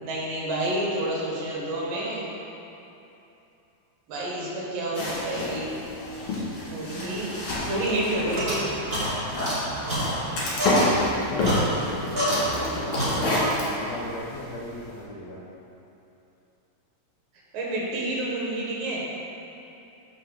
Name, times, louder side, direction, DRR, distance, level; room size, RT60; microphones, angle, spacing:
voice 1, 0.0-2.3 4.1-5.7 6.7-7.3 7.6-8.6 17.5-19.0, right 1 dB, 75° right, -4 dB, 3.0 m, -29 dB
sound 1, 4.9-15.0, left 1 dB, 50° left, 2.5 m, -29 dB
sound 2, 7.5-12.7 12.9-13.6, right 1 dB, 40° right, 0.7 m, -28 dB
voice 2, 11.3-15.4, left 1 dB, 80° left, -5 dB, 1.5 m, -37 dB
5.7 x 5.6 x 6.4 m, 2.9 s
omnidirectional pair, 4.1 m